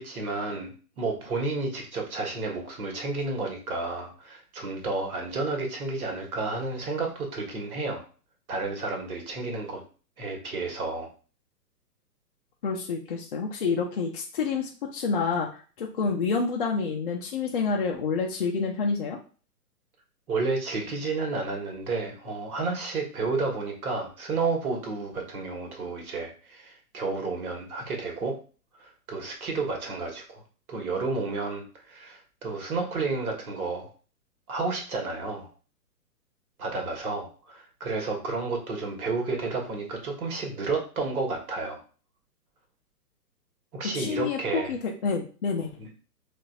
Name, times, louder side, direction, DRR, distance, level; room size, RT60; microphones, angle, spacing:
voice 1, 0.0-8.0 8.5-9.8 10.2-11.1 20.3-28.4 28.8-30.4 30.7-33.9 34.5-35.5 36.6-41.8 43.7-44.7 45.8-45.9, right 3 dB, 65° right, 2 dB, 1.4 m, -31 dB
voice 2, 12.6-15.5 15.8-19.2 43.9-45.7, left 5 dB, 35° left, 0 dB, 0.5 m, -28 dB
3.9 x 2.6 x 2.4 m, 0.38 s
figure-of-eight pair, 130°, 47 cm